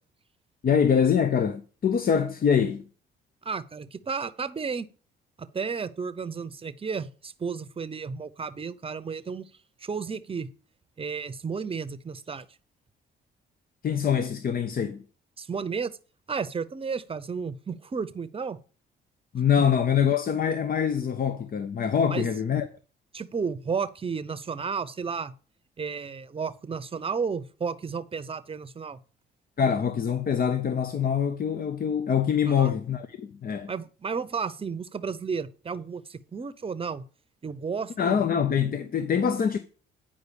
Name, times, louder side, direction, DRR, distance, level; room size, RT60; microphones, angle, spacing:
voice 1, 0.6-2.8 13.8-15.0 19.3-22.7 29.6-33.7 38.0-39.6, left 7 dB, 45° left, 0.8 m, -24 dB
voice 2, 3.4-4.9 5.4-9.5 9.8-10.5 11.0-12.5 15.4-16.0 16.3-18.6 22.1-22.3 23.1-25.3 25.8-29.0 32.5-32.7 33.7-37.0 37.4-38.2, right 5 dB, 30° right, 0.8 m, -32 dB
9.6 x 5.1 x 7.0 m
cardioid pair, 90°, 20 cm